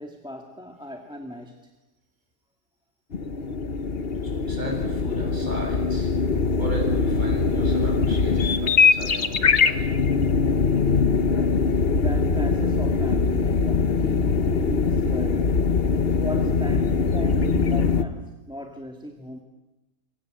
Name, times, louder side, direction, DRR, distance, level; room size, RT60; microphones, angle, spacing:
voice 1, 0.0-1.7 10.6-15.7 16.2-19.4, equal, 5° right, 3 dB, 1.9 m, -37 dB
sound 1, 3.1-18.0, left 5 dB, 40° left, 1.2 m, -22 dB
voice 2, 4.3-6.1 6.6-9.9, right 1 dB, 25° right, 0 dB, 7.9 m, -36 dB
27.0 x 24.0 x 7.9 m, 1.0 s
omnidirectional pair, 1.8 m